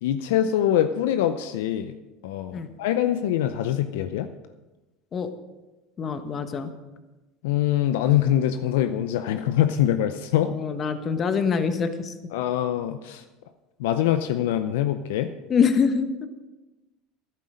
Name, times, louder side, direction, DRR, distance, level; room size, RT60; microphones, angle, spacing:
voice 1, 0.0-1.9 2.2-4.3 7.4-10.5 12.3-13.2 13.8-15.3, left 11 dB, 80° left, 10 dB, 0.6 m, -24 dB
voice 2, 6.0-6.7 10.5-12.1 15.5-16.3, left 6 dB, 40° left, 9 dB, 1.3 m, -24 dB
13.0 x 11.0 x 5.1 m, 1.1 s
hypercardioid pair, 90°, 0 cm